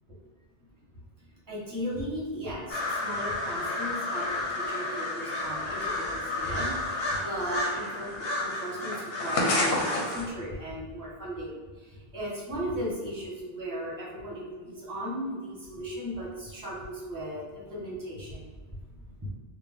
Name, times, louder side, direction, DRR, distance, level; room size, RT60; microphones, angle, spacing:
voice 1, 1.5-2.7 3.0-4.2 4.5-8.1 8.4-8.9 9.2-11.6 12.1-17.4 17.7-18.4, equal, 20° right, -5 dB, 1.0 m, -36 dB
sound 1, 2.7-10.3, left 2 dB, 75° left, 1.0 m, -30 dB
3.6 x 2.1 x 3.5 m, 1.4 s
omnidirectional pair, 1.0 m